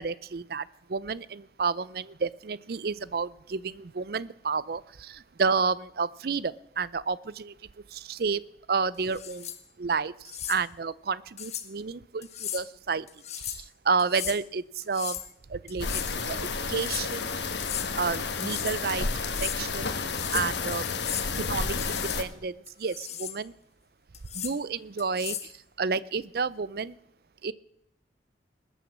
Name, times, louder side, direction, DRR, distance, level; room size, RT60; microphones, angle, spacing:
voice 1, 0.0-7.5 7.9-8.4 8.7-9.5 9.8-13.1 13.4-15.2 15.5-16.0 16.3-17.4 18.0-19.1 19.4-19.9 20.3-20.8 21.4-23.5 24.3-25.5 25.8-27.0 27.4-27.5, right 5 dB, 55° right, 20 dB, 0.5 m, -30 dB
sound 1, 9.1-9.6 10.2-10.6 11.4-11.7 12.2-12.6 13.1-13.6 14.0-14.4 14.8-15.3 15.7-16.2 16.6-17.1 17.5-17.9 18.3-18.8 19.1-19.6 20.0-20.5 20.8-21.3 21.7-22.2 22.7-23.4 24.1-24.5 25.0-25.5, left 10 dB, 40° left, 1.2 m, -36 dB
sound 2, 15.8-22.2, left 4 dB, 80° left, 1.4 m, -31 dB
20.5 x 9.1 x 7.3 m, 0.79 s
head